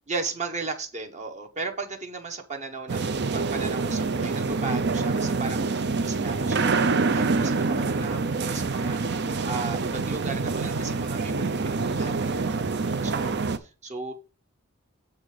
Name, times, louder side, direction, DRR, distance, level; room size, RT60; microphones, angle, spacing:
voice 1, 0.1-14.1, right 4 dB, 30° right, 5 dB, 1.0 m, -36 dB
sound 1, 2.9-13.6, right 4 dB, 50° right, 0.6 m, -26 dB
8.1 x 3.7 x 6.8 m, 0.33 s
head